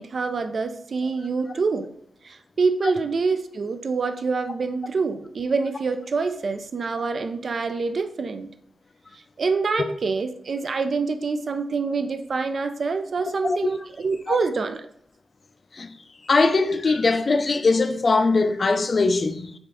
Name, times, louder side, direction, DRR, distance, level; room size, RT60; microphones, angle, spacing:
voice 1, 0.0-1.9 2.2-8.5 9.1-14.9, right 4 dB, 60° right, 0.3 m, -26 dB
voice 2, 16.3-19.5, left 3 dB, 45° left, 0.4 m, -21 dB
5.3 x 2.5 x 3.5 m
wide cardioid pair, 110°, 0 cm